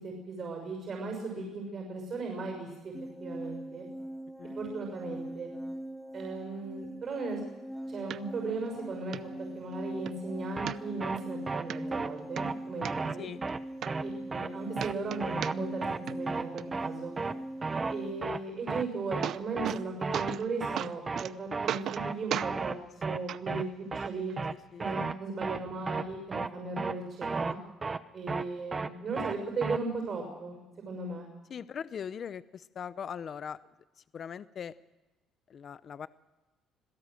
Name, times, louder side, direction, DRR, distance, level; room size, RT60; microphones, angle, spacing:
voice 1, 0.0-2.9 3.2-3.9 4.5-5.5 6.1-7.4 7.9-9.3 9.5-13.3 14.0-17.1 17.9-22.8 23.0-24.3 24.8-27.6 28.1-30.6 30.9-31.3, right 3 dB, 40° right, 1 dB, 6.1 m, -37 dB
sound 1, 2.9-18.1, right 1 dB, 5° right, 4.8 m, -41 dB
sound 2, 8.1-8.2 8.7-8.8 9.1-9.2 9.7-10.1 10.7-11.2 11.7-11.8 12.2-12.9 13.5-13.6 13.8-14.5 14.8-15.8 16.1-16.6 18.7-18.8 19.0-19.8 20.1-20.5 20.8-21.3 21.7-22.0 22.3-22.5 23.3-23.4 24.3-24.4, right 10 dB, 55° right, 0.6 m, -35 dB
sound 3, 10.6-10.7 11.0-11.2 11.5-11.6 11.9-12.1 12.4-12.5 12.8-13.1 13.4-13.6 13.9-14.0 14.3-14.5 14.8-14.9 15.2-15.5 15.8-16.0 16.3-16.4 16.7-16.9 17.2-17.3 17.6-17.9 18.2-18.4 18.7-18.8 19.1-19.3 19.6-19.7 20.0-20.3 20.6-20.8 21.1-21.2 21.5-21.7 22.0-22.1 22.4-22.7 23.0-23.2 23.5-23.6 23.9-24.1 24.4-24.5 24.8-25.1 25.4-25.6 25.9-26.0 26.3-26.5 26.8-26.9 27.2-27.5 27.8-28.0 28.3-28.4 28.7-28.9 29.2-29.3 29.6-29.8, right 4 dB, 25° right, 0.9 m, -33 dB
voice 2, 31.5-33.6 34.1-34.7 35.5-36.1, left 7 dB, 40° left, 15 dB, 0.7 m, -40 dB
26.0 x 17.0 x 7.8 m, 1.1 s
cardioid pair, 125°, 0 cm